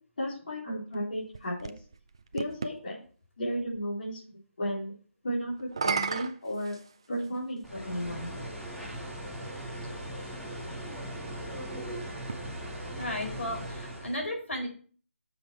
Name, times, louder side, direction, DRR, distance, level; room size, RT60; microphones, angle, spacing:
voice 1, 0.2-1.7 2.3-3.0 3.4-4.9 5.2-6.7 7.1-8.3, equal, 40° left, -6 dB, 4.4 m, -34 dB
sound 1, 0.9-2.8 5.6-7.4 8.3-8.4 12.1-13.7, right 5 dB, 25° right, 0.4 m, -36 dB
sound 2, 7.6-14.2, right 1 dB, ahead, 0.7 m, -39 dB
voice 2, 12.9-14.7, left 1 dB, 70° left, 1 dB, 5.0 m, -34 dB
9.2 x 7.2 x 4.8 m, 0.42 s
hypercardioid pair, 175°, 7 cm